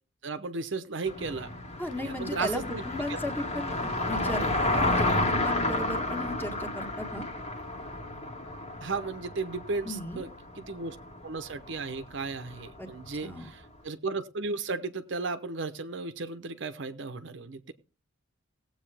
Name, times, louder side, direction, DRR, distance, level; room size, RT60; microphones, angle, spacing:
voice 1, 0.2-1.5 2.0-2.8 3.1-3.2 8.8-10.3 10.6-11.0 11.2-17.7, right 4 dB, 65° right, 11 dB, 0.8 m, -35 dB
Car passing by, 1.1-13.4, left 2 dB, 35° left, 1.6 m, -31 dB
voice 2, 1.8-7.3 9.8-10.3 12.8-12.9 13.2-13.5, left 1 dB, 10° left, 4 dB, 1.6 m, -36 dB
18.0 x 7.9 x 3.4 m, 0.35 s
head